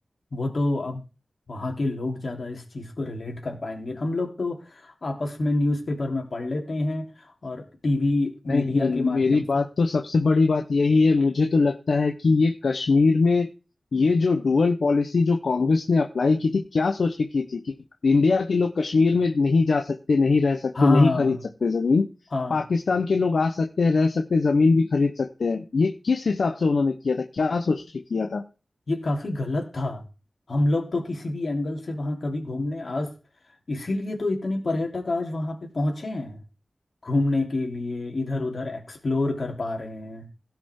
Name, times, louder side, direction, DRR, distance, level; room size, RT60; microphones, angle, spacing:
voice 1, 0.3-1.0 1.5-9.6 20.7-21.4 22.3-22.6 28.9-30.0 30.5-33.1 33.7-36.4 37.0-40.3, left 2 dB, 55° left, 1 dB, 3.4 m, -27 dB
voice 2, 8.5-13.5 13.9-17.7 18.0-21.4 21.6-22.1 22.5-28.4, left 4 dB, 80° left, 5 dB, 0.9 m, -22 dB
17.0 x 5.9 x 3.8 m, 0.32 s
wide cardioid pair, 85°, 0 cm